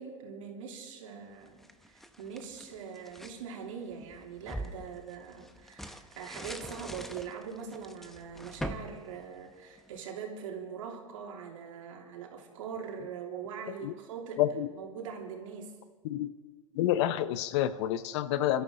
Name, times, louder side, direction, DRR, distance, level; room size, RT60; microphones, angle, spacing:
voice 1, 0.0-14.4 14.7-15.7, right 7 dB, 70° right, 0 dB, 3.1 m, -42 dB
sound 1, 1.4-3.4 3.9-10.0, equal, ahead, 0.8 m, -43 dB
voice 2, 14.4-14.7 16.0-16.3 16.7-18.6, left 12 dB, 55° left, 14 dB, 0.8 m, -28 dB
29.0 x 13.0 x 3.8 m, 1.4 s
hypercardioid pair, 110°, 17 cm